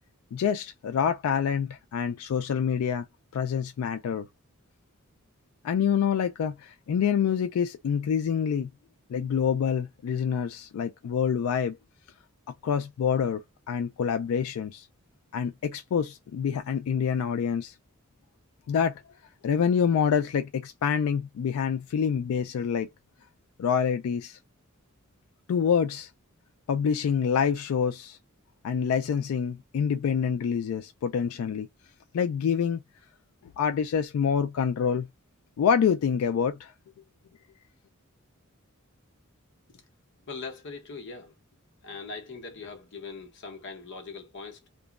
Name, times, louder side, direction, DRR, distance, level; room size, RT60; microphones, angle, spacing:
voice 1, 0.3-3.0 3.3-4.3 5.6-8.7 9.1-11.8 12.6-13.4 13.7-14.9 15.3-17.7 18.7-18.9 19.4-22.9 23.6-24.4 25.5-26.1 26.7-28.2 28.6-31.7 32.1-32.8 33.6-35.1 35.6-36.7, left 7 dB, 90° left, 0.3 m, -26 dB
voice 2, 40.3-41.3 41.8-44.7, left 4 dB, 60° left, 0.8 m, -41 dB
2.9 x 2.2 x 2.3 m
head